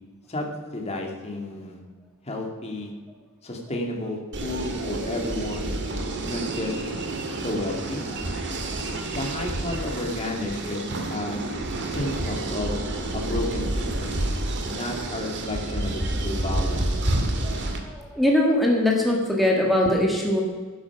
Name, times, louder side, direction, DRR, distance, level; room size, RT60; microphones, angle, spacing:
voice 1, 0.3-1.8 2.2-2.9 3.4-5.8 6.2-6.7 7.4-8.0 9.1-10.8 11.1-12.8 13.1-14.2 14.6-16.9, left 1 dB, 30° left, 1 dB, 2.3 m, -32 dB
sound 1, 4.3-17.8, right 2 dB, 55° right, 1.8 m, -29 dB
voice 2, 17.8-20.4, left 1 dB, ahead, -1 dB, 1.6 m, -21 dB
12.0 x 10.5 x 6.0 m, 1.5 s
head